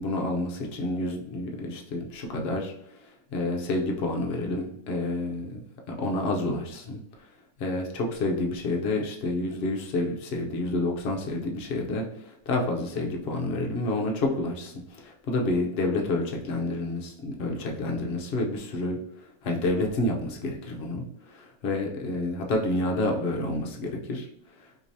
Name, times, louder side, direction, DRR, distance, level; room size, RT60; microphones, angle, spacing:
voice 1, 0.0-7.0 7.6-19.0 19.4-24.3 24.6-24.7, left 2 dB, 55° left, 0 dB, 0.8 m, -29 dB
4.6 x 2.9 x 2.7 m, 0.76 s
omnidirectional pair, 1.6 m